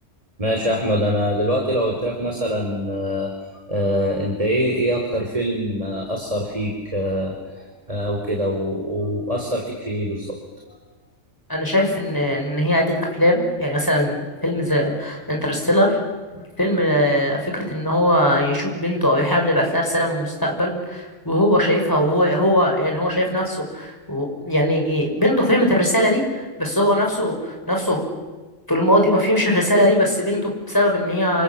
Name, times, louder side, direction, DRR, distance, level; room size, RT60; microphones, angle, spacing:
voice 1, 0.4-3.3 3.7-10.4 16.3-16.4, equal, 25° right, 1 dB, 3.8 m, -24 dB
voice 2, 11.5-16.0 16.6-28.0 28.7-31.4, equal, 15° left, 1 dB, 6.1 m, -20 dB
28.0 x 27.0 x 7.3 m, 1.3 s
omnidirectional pair, 1.3 m